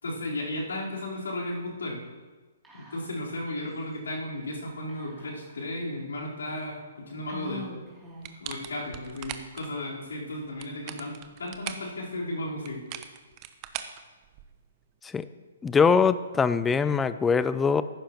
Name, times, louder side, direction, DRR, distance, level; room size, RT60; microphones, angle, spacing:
voice 1, 0.0-2.0 2.7-7.7 8.4-11.1 11.4-12.8, left 1 dB, 75° left, -5 dB, 4.1 m, -34 dB
Whispering, 2.6-3.4 3.6-3.7 4.9-5.7 6.4-6.5 7.3-8.5, right 1 dB, 10° right, 2.9 m, -45 dB
sound 1, 8.2-9.7 10.4-11.9 12.7-14.7, right 11 dB, 35° right, 0.8 m, -40 dB
voice 2, 15.6-17.8, left 5 dB, 10° left, 14 dB, 0.5 m, -22 dB
14.5 x 11.5 x 3.0 m, 1.3 s
hypercardioid pair, 130°, 0 cm